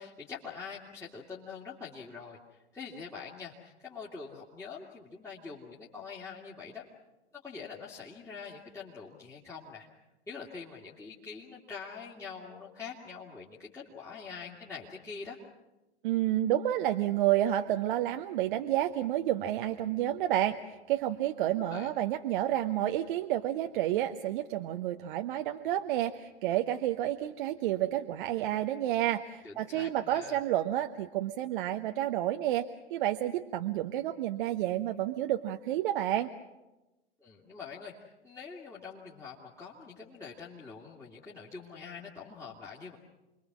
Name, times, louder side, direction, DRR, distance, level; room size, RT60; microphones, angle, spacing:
voice 1, 0.0-6.8 7.4-9.9 10.3-15.4 21.6-21.9 29.4-30.4 37.2-43.0, left 5 dB, 10° left, -6 dB, 2.4 m, -45 dB
voice 2, 16.0-36.3, right 13 dB, 50° right, 6 dB, 1.0 m, -30 dB
29.0 x 22.0 x 6.2 m, 1.0 s
figure-of-eight pair, 100°, 33 cm